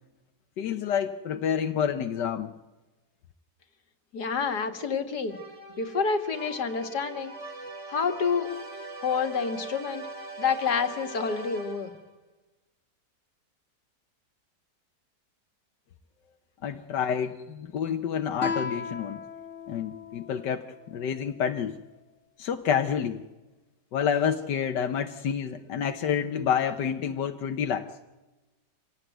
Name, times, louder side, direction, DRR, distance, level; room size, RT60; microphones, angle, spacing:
voice 1, 0.6-2.5 16.6-19.2 19.7-21.8 22.4-23.2 23.9-27.9, left 8 dB, 90° left, 5 dB, 1.6 m, -28 dB
voice 2, 4.1-5.4 5.8-7.4 7.9-8.5 9.0-10.1 10.4-11.9, left 5 dB, 70° left, 6 dB, 2.4 m, -28 dB
sound 1, 5.3-12.1, right 2 dB, 45° right, 2.8 m, -41 dB
Guitar, 18.4-21.6, left 5 dB, 45° left, 2.2 m, -37 dB
26.0 x 17.5 x 9.2 m, 1.1 s
omnidirectional pair, 1.8 m